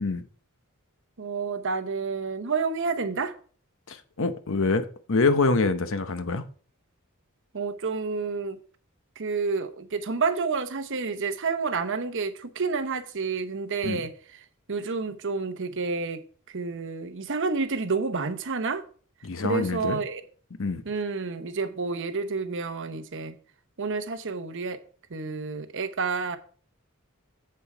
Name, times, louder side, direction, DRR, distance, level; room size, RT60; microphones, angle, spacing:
voice 1, 1.2-3.3 7.5-8.6 9.2-14.1 14.7-18.8 19.4-20.2 20.8-23.3 23.8-24.8 25.1-26.4, right 4 dB, 60° right, 0.9 m, -29 dB
voice 2, 3.9-6.4 13.8-14.0 19.2-20.0 20.6-20.8, left 3 dB, 65° left, 0.8 m, -25 dB
7.8 x 7.0 x 4.9 m
head